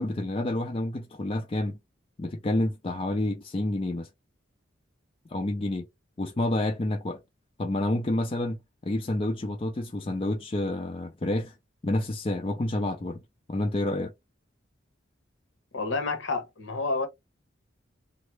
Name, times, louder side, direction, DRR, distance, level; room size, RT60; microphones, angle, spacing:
voice 1, 0.0-1.8 2.2-4.1 5.3-5.9 6.2-7.2 7.6-8.6 8.8-11.5 11.8-13.2 13.5-14.1, left 1 dB, 30° left, 0.4 m, -29 dB
voice 2, 15.7-17.1, left 3 dB, 70° left, 0.9 m, -29 dB
3.4 x 2.1 x 3.1 m
head